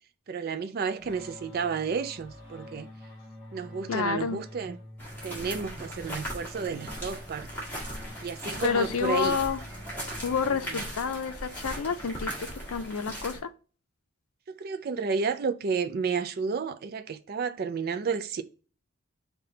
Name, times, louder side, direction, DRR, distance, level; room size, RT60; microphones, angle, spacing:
voice 1, 0.3-2.9 3.5-4.8 5.2-7.5 8.2-9.4 14.5-18.4, right 5 dB, 45° right, 0.4 m, -31 dB
sound 1, 1.0-11.2, left 1 dB, 25° left, 1.3 m, -47 dB
voice 2, 3.9-4.4 8.6-9.6 10.2-13.5, left 6 dB, 85° left, 0.5 m, -29 dB
sound 2, 5.0-13.4, equal, 10° left, 1.6 m, -39 dB
5.7 x 2.2 x 3.7 m
head